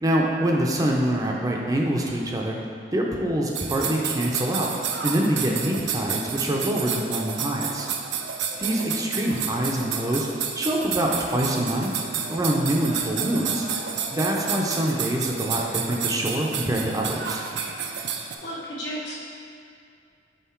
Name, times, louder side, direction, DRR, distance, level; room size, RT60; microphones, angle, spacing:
voice 1, 0.0-2.6 2.9-4.7 5.0-7.9 8.6-10.3 10.6-11.9 12.3-13.7 14.1-17.4, right 1 dB, 20° right, -1 dB, 0.5 m, -25 dB
sound 1, 3.5-18.4, right 7 dB, 75° right, 0.5 m, -30 dB
voice 2, 18.4-19.2, equal, 80° left, -5 dB, 1.1 m, -35 dB
5.7 x 3.8 x 4.4 m, 2.4 s
head